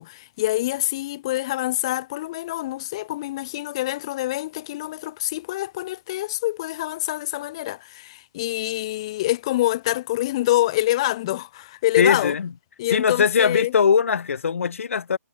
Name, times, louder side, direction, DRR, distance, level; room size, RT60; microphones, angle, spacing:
voice 1, 0.0-12.3 12.8-13.7, left 16 dB, 20° left, 0.8 m, -26 dB
voice 2, 12.0-12.5 12.9-15.2, left 6 dB, 50° left, 1.3 m, -20 dB
hypercardioid pair, 170°, 9 cm